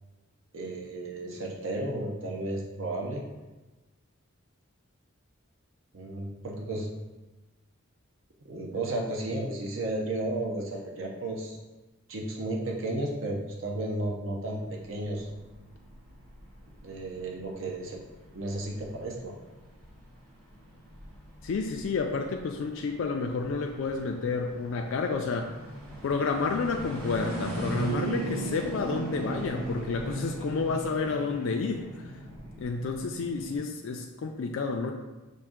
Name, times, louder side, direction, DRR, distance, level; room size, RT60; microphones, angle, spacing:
voice 1, 0.5-3.2 5.9-6.9 8.5-11.6 12.1-15.3 16.8-18.0 18.3-19.3, right 1 dB, 60° right, -1 dB, 0.6 m, -33 dB
sound 1, 14.6-33.6, right 2 dB, 75° right, 1.1 m, -39 dB
voice 2, 21.4-25.6 26.0-32.1 32.6-34.9, left 4 dB, 60° left, 3 dB, 0.3 m, -30 dB
5.6 x 2.5 x 3.6 m, 1.2 s
head